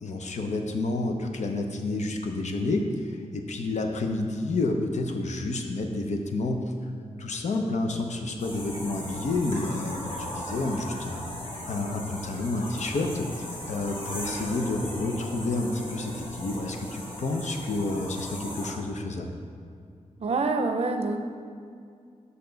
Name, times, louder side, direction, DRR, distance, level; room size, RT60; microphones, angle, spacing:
voice 1, 0.0-6.6 7.2-11.2 11.7-19.3, left 2 dB, 70° left, 4 dB, 0.7 m, -29 dB
sound 1, 8.4-18.7, left 1 dB, 45° left, 1.5 m, -38 dB
voice 2, 20.2-21.2, right 3 dB, 55° right, 5 dB, 0.6 m, -26 dB
6.8 x 6.7 x 3.9 m, 2.3 s
wide cardioid pair, 135°, 12 cm